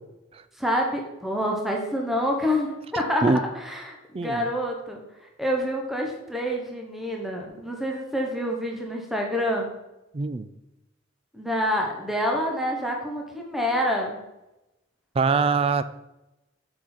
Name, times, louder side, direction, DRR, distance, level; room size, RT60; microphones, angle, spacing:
voice 1, 0.6-5.0 5.4-9.7 11.3-14.2, equal, ahead, 0 dB, 0.9 m, -27 dB
voice 2, 4.1-4.5 10.1-10.5 15.2-15.8, right 4 dB, 30° right, 13 dB, 0.3 m, -23 dB
6.1 x 5.7 x 4.4 m, 0.95 s
head